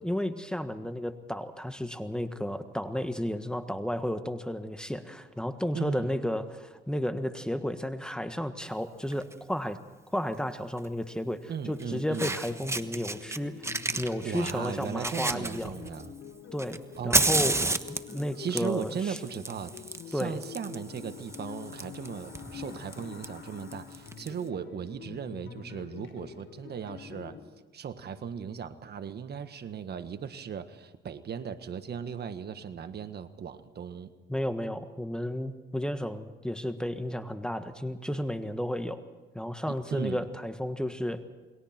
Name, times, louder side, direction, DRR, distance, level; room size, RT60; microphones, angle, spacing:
voice 1, 0.0-9.8 10.1-15.8 16.5-17.6 17.9-19.2 20.1-20.4 34.3-39.0 39.3-41.2, equal, 5° left, 8 dB, 1.6 m, -33 dB
voice 2, 5.7-6.1 11.5-12.3 14.2-16.1 17.0-17.3 18.4-27.4 27.7-34.1 39.9-40.2, right 7 dB, 55° right, 9 dB, 1.6 m, -37 dB
Fire, 9.1-9.3 10.8-10.9 11.8-11.9 12.1-13.4 13.6-16.1 16.6-24.3, right 2 dB, 15° right, 1.3 m, -32 dB
sound 1, 11.6-27.4, left 8 dB, 80° left, 3.2 m, -46 dB
28.5 x 22.0 x 4.5 m, 1.3 s
cardioid pair, 90°, 20 cm